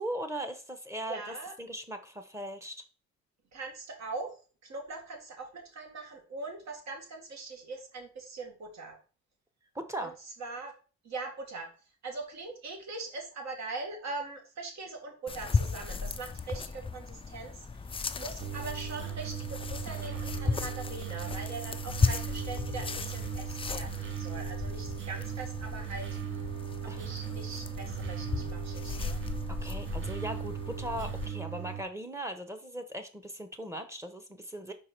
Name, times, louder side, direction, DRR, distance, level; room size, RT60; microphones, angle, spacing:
voice 1, 0.0-2.8 9.7-10.1 26.9-27.1 29.5-34.7, right 1 dB, 10° right, 8 dB, 1.0 m, -39 dB
voice 2, 1.1-1.5 3.5-4.3 4.6-9.0 10.0-10.1 10.4-10.7 11.0-11.7 12.0-17.8 18.1-26.1 26.8-29.2, right 3 dB, 60° right, 2 dB, 2.1 m, -41 dB
sound 1, 15.3-31.3, left 4 dB, 20° left, 0.4 m, -36 dB
sound 2, 18.4-31.8, right 10 dB, 40° right, 0.8 m, -38 dB
4.9 x 4.7 x 4.5 m, 0.37 s
cardioid pair, 90°, 30 cm